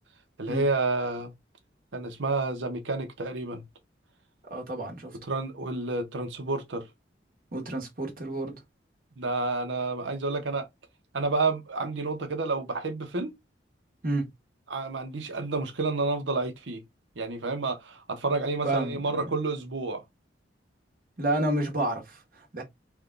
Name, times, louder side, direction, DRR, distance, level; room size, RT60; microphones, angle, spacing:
voice 1, 0.4-1.3 1.9-3.6 5.2-6.9 9.2-10.7 11.1-13.4 14.7-16.8 17.1-20.0, right 3 dB, 85° right, 0.9 m, -30 dB
voice 2, 4.5-5.2 7.5-8.6 14.0-14.3 18.6-19.3 21.2-22.6, right 1 dB, 50° right, 1.2 m, -30 dB
3.4 x 2.3 x 3.7 m
head